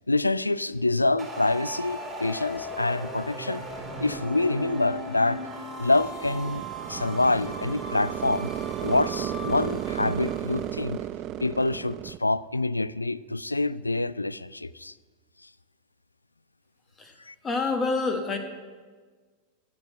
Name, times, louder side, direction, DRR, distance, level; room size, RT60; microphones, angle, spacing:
voice 1, 0.1-3.6 4.0-5.4 5.8-6.6 6.9-8.5 8.8-11.0 11.4-14.9 17.3-17.4, left 2 dB, 85° left, 19 dB, 0.3 m, -26 dB
sound 1, 1.2-10.8, equal, 10° right, 2.8 m, -38 dB
sound 2, 6.0-12.2, right 12 dB, 35° right, 0.3 m, -34 dB
voice 2, 17.4-18.4, left 3 dB, 20° left, 6 dB, 1.5 m, -27 dB
15.0 x 6.0 x 7.9 m, 1.5 s
figure-of-eight pair, 90°, 0 cm